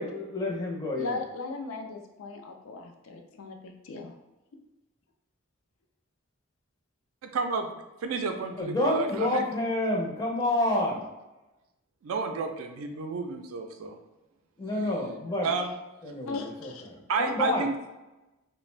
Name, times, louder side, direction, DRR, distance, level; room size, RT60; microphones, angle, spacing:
voice 1, 0.0-1.2 8.6-11.0 14.6-15.5 16.0-17.7, left 1 dB, 20° left, -2 dB, 0.5 m, -29 dB
voice 2, 1.0-4.1 16.3-16.8, left 3 dB, 85° left, 4 dB, 0.4 m, -38 dB
voice 3, 7.2-9.4 12.0-14.0 15.4-15.7 17.1-17.8, right 4 dB, 85° right, 5 dB, 0.4 m, -31 dB
2.4 x 2.1 x 3.1 m, 1.0 s
head